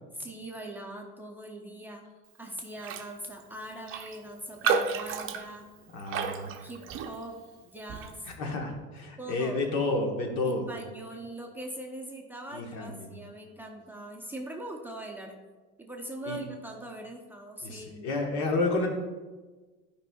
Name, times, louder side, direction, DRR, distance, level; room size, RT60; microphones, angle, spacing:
voice 1, 0.2-2.0 2.4-5.7 6.2-8.3 9.2-9.6 10.4-15.4 15.8-18.1, right 1 dB, 5° right, 0 dB, 0.7 m, -41 dB
Raindrop, 2.8-3.1 3.4-3.5 3.9-7.4 7.9-8.2, right 6 dB, 45° right, 0.6 m, -32 dB
voice 2, 5.9-6.5 8.4-10.7 12.5-13.1 16.3-16.4 17.6-18.9, left 2 dB, 65° left, 2 dB, 1.4 m, -30 dB
11.0 x 5.3 x 2.3 m, 1.3 s
cardioid pair, 125°, 31 cm